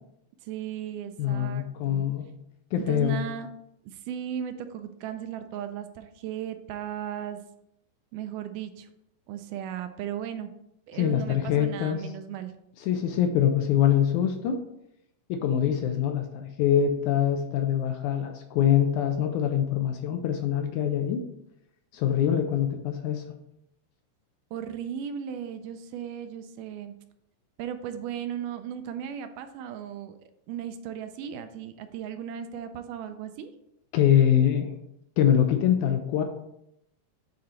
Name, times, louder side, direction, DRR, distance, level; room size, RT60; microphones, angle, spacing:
voice 1, 0.4-2.0 2.8-3.5 3.8-7.4 8.1-8.9 9.3-10.5 10.9-12.5 24.5-26.9 27.6-33.5, right 9 dB, 80° right, 8 dB, 2.0 m, -36 dB
voice 2, 1.2-2.3 2.7-3.2 10.9-12.0 12.8-14.6 15.3-21.2 21.9-23.2 33.9-34.7 35.2-36.2, left 9 dB, 80° left, 5 dB, 1.9 m, -24 dB
8.7 x 3.8 x 4.3 m, 0.80 s
omnidirectional pair, 3.9 m